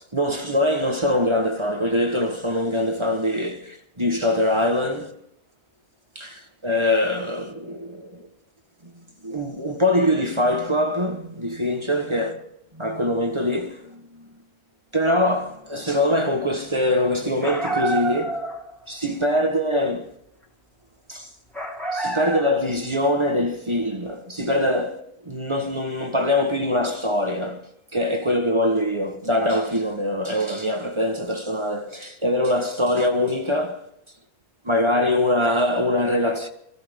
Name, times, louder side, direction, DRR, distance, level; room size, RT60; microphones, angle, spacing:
voice 1, 0.1-5.1 6.1-8.3 8.8-8.9 9.2-12.4 12.7-14.3 14.9-18.4 18.9-20.1 21.1-21.3 21.9-33.9 34.6-36.5, left 1 dB, 20° right, 1.2 m, -23 dB
sound 1, 17.4-18.8 21.5-22.7, right 2 dB, ahead, 1.7 m, -28 dB
23.5 x 15.0 x 3.6 m
omnidirectional pair, 1.4 m